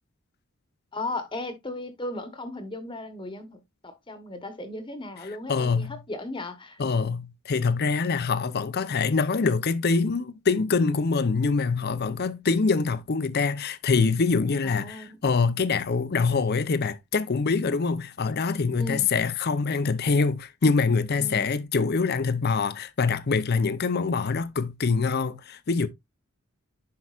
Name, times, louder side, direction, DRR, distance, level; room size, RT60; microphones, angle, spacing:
voice 1, 0.9-6.8 14.6-15.2 18.8-19.1 21.2-21.5, left 2 dB, 25° left, 1.0 m, -36 dB
voice 2, 5.5-6.0 6.8-25.9, left 4 dB, 50° left, 0.6 m, -25 dB
10.5 x 4.8 x 2.4 m
head